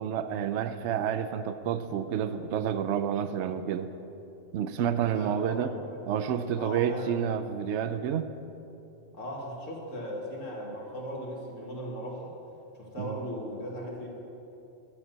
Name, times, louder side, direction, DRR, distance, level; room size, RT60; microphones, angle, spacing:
voice 1, 0.0-3.9 4.5-5.7 6.1-8.3 13.0-13.2, right 8 dB, 70° right, 11 dB, 0.9 m, -29 dB
voice 2, 5.0-6.1 6.5-7.4 9.1-12.3 12.8-14.1, equal, 80° left, -2 dB, 2.2 m, -38 dB
11.5 x 7.1 x 7.5 m, 2.8 s
omnidirectional pair, 1.3 m